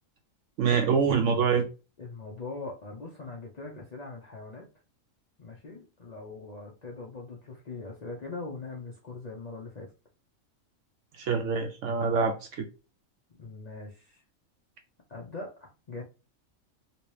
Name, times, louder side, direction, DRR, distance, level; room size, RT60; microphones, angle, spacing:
voice 1, 0.6-1.7 11.2-12.7, right 5 dB, 70° right, 0.8 m, -25 dB
voice 2, 2.0-4.7 5.4-9.9 13.4-14.2 15.1-16.0, left 3 dB, 50° left, 0.5 m, -41 dB
3.0 x 2.8 x 3.1 m
omnidirectional pair, 1.5 m